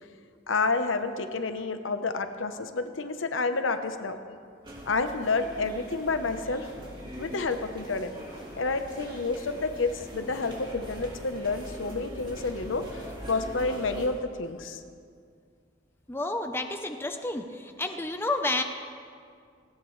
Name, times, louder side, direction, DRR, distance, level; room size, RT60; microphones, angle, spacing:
voice 1, 0.5-4.2 4.9-6.7 7.2-8.1 8.5-14.8, left 3 dB, 85° left, 8 dB, 0.9 m, -29 dB
sound 1, 4.6-14.1, equal, 25° right, 2.7 m, -42 dB
voice 2, 16.1-18.6, left 2 dB, 10° left, 6 dB, 0.7 m, -30 dB
19.0 x 17.5 x 3.2 m, 2.2 s
head